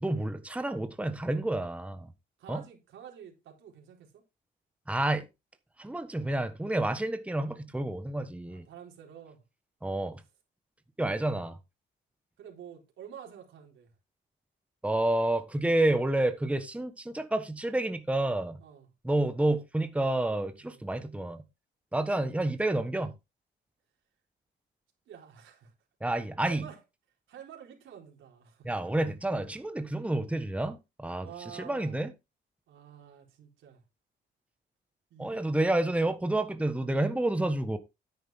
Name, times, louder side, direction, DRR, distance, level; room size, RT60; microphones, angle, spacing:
voice 1, 0.0-2.1 2.5-2.6 4.9-5.2 5.8-8.6 9.8-10.2 11.0-11.5 14.8-18.6 19.0-21.4 21.9-23.1 26.0-26.7 28.6-32.1 35.2-37.8, right 1 dB, 5° right, 1.3 m, -29 dB
voice 2, 2.4-4.2 8.4-9.4 11.1-11.4 12.4-13.9 18.6-18.9 20.6-20.9 22.2-22.3 25.1-25.7 26.2-26.8 27.3-28.7 31.2-32.0 32.7-33.8 35.1-35.4 36.4-36.5, right 8 dB, 80° right, 4.4 m, -49 dB
10.5 x 9.3 x 3.7 m
cardioid pair, 90°, 20 cm